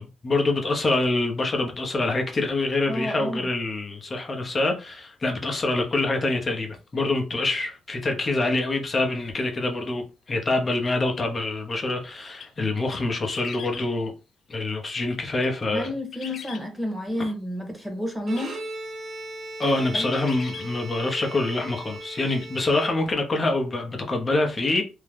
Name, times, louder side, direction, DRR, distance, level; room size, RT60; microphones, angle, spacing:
voice 1, 0.0-14.1 14.5-15.9 17.2-17.3 19.6-24.8, left 2 dB, 35° left, 0.8 m, -25 dB
voice 2, 2.9-3.5 15.7-18.6 19.9-20.1, left 1 dB, 5° right, 1.1 m, -30 dB
sound 1, 8.4-8.5 11.1-11.3 12.3-12.5 12.9-13.9 15.1-16.7 18.3-18.5 19.1-19.2 19.6-19.8 20.0-20.7 22.4-22.5, left 6 dB, 60° left, 0.4 m, -42 dB
Bowed string instrument, 18.2-23.4, right 2 dB, 50° right, 1.2 m, -38 dB
2.7 x 2.3 x 3.4 m
cardioid pair, 90°, 0 cm